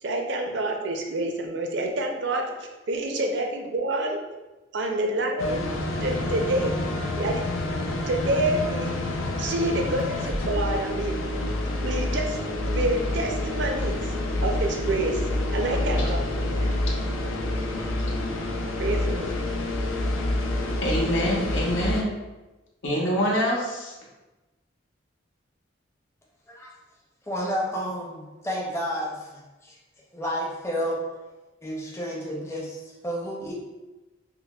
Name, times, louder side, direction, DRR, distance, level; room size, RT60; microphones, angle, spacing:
voice 1, 0.0-4.2 4.7-5.7 6.0-6.8 7.1-7.4 8.1-9.1 9.4-11.2 11.8-12.4 12.7-14.1 14.4-15.2 15.5-16.7 18.8-19.4, right 1 dB, 60° right, 3 dB, 0.5 m, -28 dB
sound 1, 5.4-22.0, left 1 dB, 90° left, 0.5 m, -28 dB
voice 2, 20.8-22.1 22.8-23.9, equal, 70° left, -3 dB, 0.8 m, -25 dB
voice 3, 27.3-29.8 30.1-31.0 31.6-33.5, equal, 15° left, -4 dB, 0.5 m, -31 dB
5.6 x 2.1 x 2.3 m, 1.1 s
head